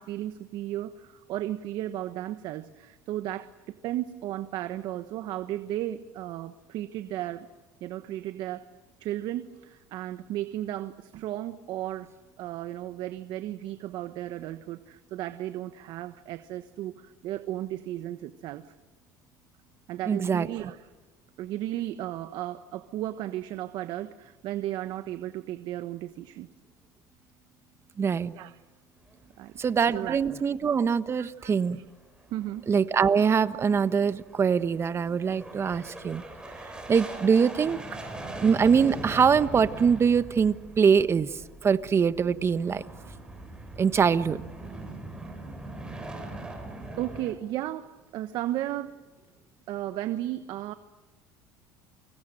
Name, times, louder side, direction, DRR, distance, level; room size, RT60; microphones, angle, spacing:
voice 1, 0.0-7.5 7.8-8.7 9.0-12.1 12.4-18.7 19.9-20.9 21.4-26.5 28.3-28.6 29.4-29.6 29.9-30.2 31.2-31.8 32.3-32.7 46.1-46.4 47.0-49.0 49.7-50.7, right 13 dB, 60° right, 11 dB, 1.3 m, -35 dB
voice 2, 20.1-20.5 28.0-28.3 29.6-31.8 32.7-36.2 36.9-37.8 38.4-41.3 41.6-42.8 43.8-44.4, right 6 dB, 30° right, 13 dB, 1.3 m, -23 dB
sound 1, 29.0-30.7 31.0-31.1 31.5-31.6 32.0-47.3, right 2 dB, 10° right, 7.7 m, -42 dB
29.0 x 25.0 x 7.7 m, 1.2 s
supercardioid pair, 95°, 8 cm